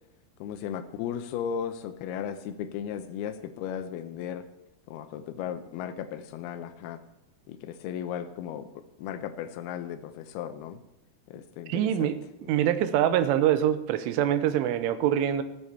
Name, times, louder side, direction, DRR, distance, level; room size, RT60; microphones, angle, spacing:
voice 1, 0.4-4.4 4.9-7.0 7.5-8.7 9.0-10.8 11.3-12.1 12.4-12.6, left 9 dB, 90° left, 9 dB, 2.2 m, -36 dB
voice 2, 11.7-12.2 12.5-15.4, right 10 dB, 85° right, 12 dB, 3.4 m, -24 dB
14.5 x 8.9 x 6.9 m, 0.93 s
omnidirectional pair, 5.5 m